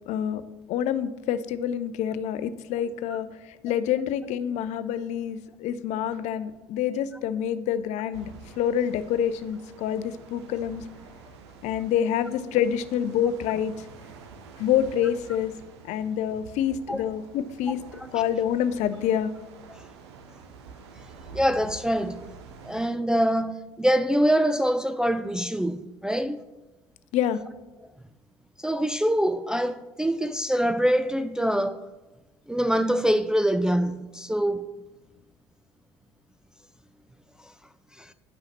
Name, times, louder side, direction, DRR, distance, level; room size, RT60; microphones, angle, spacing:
voice 1, 0.1-0.4 0.7-10.8 11.6-13.9 14.6-15.5 15.8-17.8 18.1-19.3 27.1-27.4, left 9 dB, 55° left, 0.5 m, -27 dB
sound 1, 8.1-22.9, right 5 dB, 75° right, 0.6 m, -47 dB
voice 2, 21.3-22.2 22.7-26.4 28.6-31.8 32.5-34.7 38.0-38.1, equal, 5° right, 0.3 m, -24 dB
10.0 x 5.6 x 3.0 m
hypercardioid pair, 60°, 14 cm